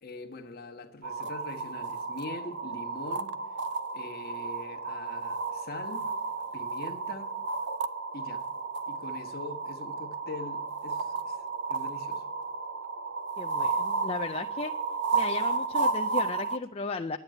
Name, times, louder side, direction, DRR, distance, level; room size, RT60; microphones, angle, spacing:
voice 1, 0.0-3.4 3.9-6.1 6.5-7.4 8.1-8.4 8.9-11.4 11.7-12.2, left 3 dB, 45° left, 1.3 m, -43 dB
sound 1, 1.0-16.6, right 4 dB, 55° right, 0.6 m, -33 dB
voice 2, 13.4-14.7 15.1-17.2, left 4 dB, 30° left, 0.4 m, -35 dB
10.5 x 8.8 x 8.9 m
head